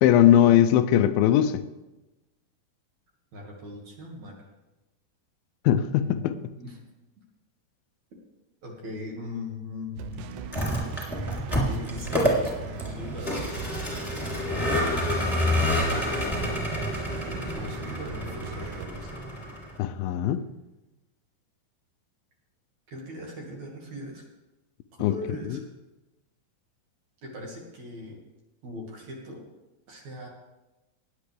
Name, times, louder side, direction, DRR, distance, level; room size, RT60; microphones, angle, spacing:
voice 1, 0.0-1.6 5.7-6.3 19.8-20.4 25.0-25.2, left 11 dB, 85° left, 2.4 m, -20 dB
voice 2, 3.3-4.5 6.0-6.8 8.6-10.3 11.5-13.4 15.3-16.7 17.1-19.1 22.9-24.2 24.9-25.6 27.2-28.2 28.6-29.4 29.9-30.3, left 1 dB, 55° right, 3.0 m, -40 dB
sound 1, 10.0-18.9, right 9 dB, 80° right, 1.9 m, -39 dB
Vehicle, 10.4-19.8, left 1 dB, 5° left, 2.5 m, -28 dB
18.0 x 9.8 x 3.4 m
omnidirectional pair, 4.2 m